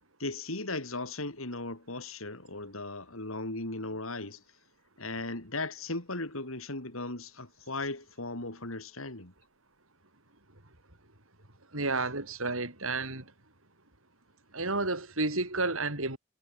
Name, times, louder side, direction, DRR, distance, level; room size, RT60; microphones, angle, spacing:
voice 1, 0.2-4.4 5.0-9.3, left 2 dB, 80° left, 5.0 m, -37 dB
voice 2, 11.7-13.3 14.5-16.2, right 3 dB, 80° right, 6.3 m, -31 dB
head